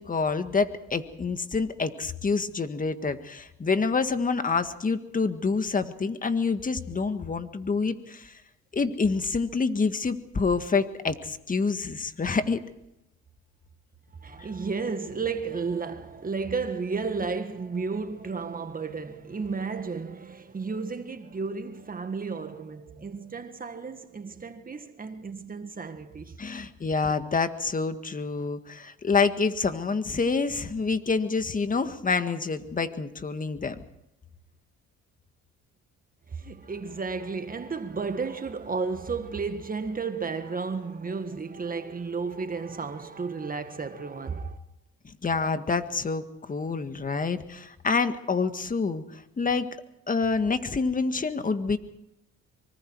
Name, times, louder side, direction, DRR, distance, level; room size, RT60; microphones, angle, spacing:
voice 1, 0.0-8.3 8.7-12.6 26.4-33.8 45.0-49.7 50.1-51.8, left 4 dB, 30° left, 1.8 m, -27 dB
voice 2, 14.2-26.4 36.3-44.6, right 4 dB, 30° right, 1.7 m, -33 dB
24.5 x 24.0 x 4.7 m
cardioid pair, 90°, 29 cm